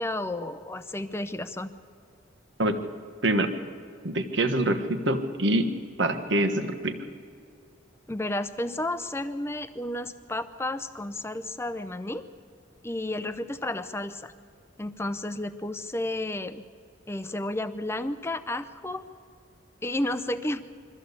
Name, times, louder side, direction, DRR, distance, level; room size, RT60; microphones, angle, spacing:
voice 1, 0.0-1.7 8.1-12.2 12.8-14.3 14.8-16.6 17.1-19.0 19.8-20.6, left 1 dB, 15° left, 11 dB, 0.6 m, -32 dB
voice 2, 3.2-3.5 4.0-5.7 6.0-7.0, right 1 dB, 65° right, 8 dB, 1.4 m, -25 dB
23.0 x 14.0 x 8.3 m, 2.3 s
head